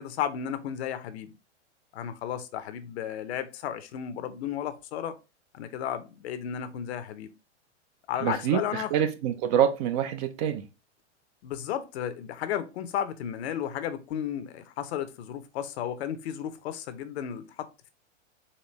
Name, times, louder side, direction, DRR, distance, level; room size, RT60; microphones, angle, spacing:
voice 1, 0.0-1.3 1.9-5.2 5.5-7.3 8.1-8.9 11.4-17.9, left 9 dB, 60° left, 0.7 m, -33 dB
voice 2, 8.2-10.7, right 9 dB, 35° right, 0.4 m, -26 dB
4.3 x 2.8 x 3.2 m
hypercardioid pair, 125°, 36 cm